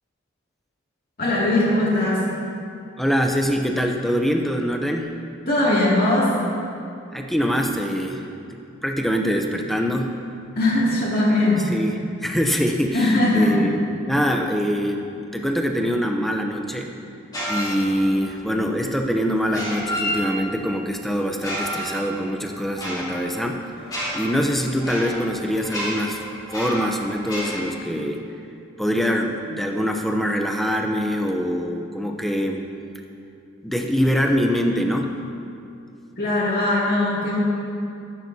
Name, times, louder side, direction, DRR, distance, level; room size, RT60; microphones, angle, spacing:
voice 1, 1.2-2.2 5.5-6.3 10.6-11.7 12.9-13.6 36.2-37.4, left 1 dB, 50° left, -6 dB, 2.4 m, -20 dB
voice 2, 3.0-5.1 7.1-8.2 8.5-10.2 11.4-13.8 14.1-16.9 17.5-23.6 24.1-26.2 26.5-28.2 28.8-32.6 33.6-35.1, equal, ahead, 2 dB, 0.6 m, -24 dB
sound 1, 17.3-18.3 19.4-20.7 21.3-27.6, equal, 20° left, 2.9 m, -31 dB
14.5 x 12.0 x 2.8 m, 2.6 s
head